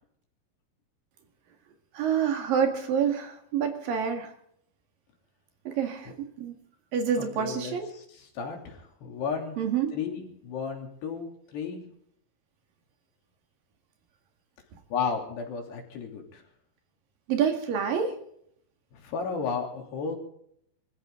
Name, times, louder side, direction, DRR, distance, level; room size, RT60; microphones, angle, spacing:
voice 1, 1.9-4.3 5.7-6.6 6.9-7.9 9.6-9.9 17.3-18.1, right 7 dB, 60° right, 5 dB, 3.5 m, -27 dB
voice 2, 7.2-9.6 9.9-11.8 14.9-16.4 18.9-20.2, left 5 dB, 80° left, 3 dB, 5.2 m, -34 dB
25.5 x 14.5 x 3.8 m, 0.69 s
omnidirectional pair, 4.7 m